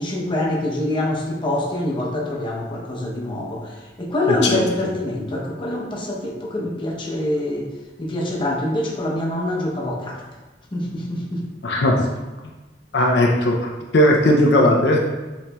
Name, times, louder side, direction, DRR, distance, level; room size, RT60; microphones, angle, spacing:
voice 1, 0.0-7.7 8.0-10.2 10.7-11.4, left 1 dB, 30° left, -3 dB, 0.7 m, -25 dB
voice 2, 11.6-12.1 12.9-15.0, left 1 dB, 70° left, 0 dB, 0.5 m, -17 dB
6.8 x 3.0 x 2.3 m, 1.2 s
head